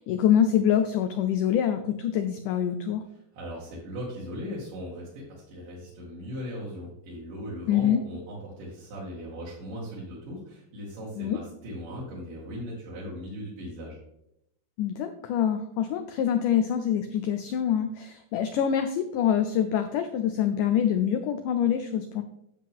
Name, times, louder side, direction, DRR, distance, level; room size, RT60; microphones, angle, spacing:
voice 1, 0.0-3.1 7.7-8.0 11.2-11.4 14.8-22.2, left 9 dB, 85° left, 8 dB, 1.8 m, -25 dB
voice 2, 3.3-14.0, equal, 65° right, -6 dB, 3.5 m, -38 dB
9.9 x 7.5 x 3.6 m, 0.80 s
omnidirectional pair, 4.3 m